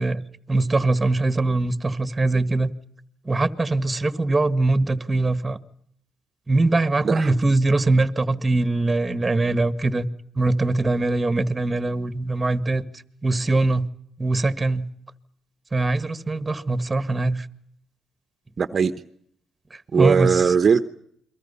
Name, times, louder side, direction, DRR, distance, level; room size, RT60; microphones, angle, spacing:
voice 1, 0.0-2.7 3.3-5.6 6.5-10.1 10.4-12.8 13.2-13.9 14.2-14.9 15.7-17.5 20.0-20.5, right 2 dB, 20° right, 1.7 m, -22 dB
voice 2, 18.6-18.9 19.9-20.8, right 6 dB, 45° right, 1.1 m, -19 dB
29.0 x 23.0 x 5.7 m
cardioid pair, 90°, 0 cm